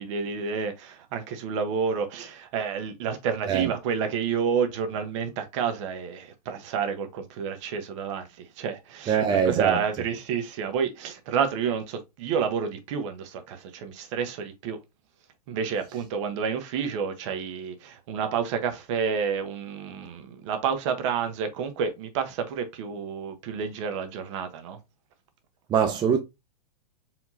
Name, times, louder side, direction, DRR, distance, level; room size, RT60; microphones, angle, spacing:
voice 1, 0.0-14.8 15.5-24.8, right 6 dB, 45° right, 1.1 m, -29 dB
voice 2, 9.1-9.8 25.7-26.2, right 7 dB, 20° right, 0.7 m, -22 dB
4.8 x 3.6 x 2.7 m
hypercardioid pair, 115°, 21 cm